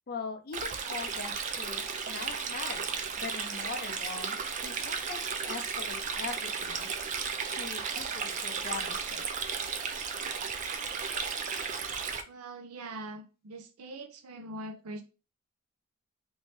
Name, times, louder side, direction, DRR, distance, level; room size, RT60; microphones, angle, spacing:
voice 1, 0.1-2.9 3.2-9.5, left 5 dB, 40° left, 6 dB, 0.5 m, -42 dB
Stream, 0.5-12.2, right 6 dB, 35° right, 0.3 m, -34 dB
voice 2, 12.3-15.0, right 2 dB, 85° right, 7 dB, 0.6 m, -42 dB
3.1 x 2.7 x 3.1 m, 0.32 s
head